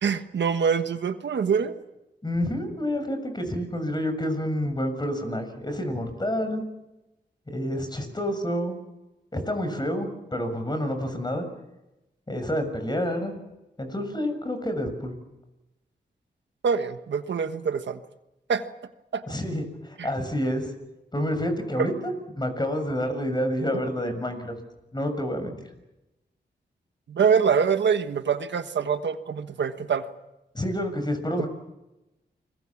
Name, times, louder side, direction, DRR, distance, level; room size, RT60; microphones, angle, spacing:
voice 1, 0.0-1.7 16.6-18.0 18.5-18.6 19.1-19.2 20.0-20.1 21.8-21.9 27.1-30.0 31.4-31.5, right 6 dB, 90° right, 9 dB, 1.4 m, -24 dB
voice 2, 2.2-6.6 7.5-8.8 9.3-11.5 12.3-13.4 13.8-15.2 19.3-20.7 21.1-21.9 22.3-24.6 24.9-25.5 30.5-31.5, equal, 25° left, 7 dB, 6.8 m, -28 dB
29.5 x 22.0 x 7.3 m, 0.97 s
cardioid pair, 65°, 18 cm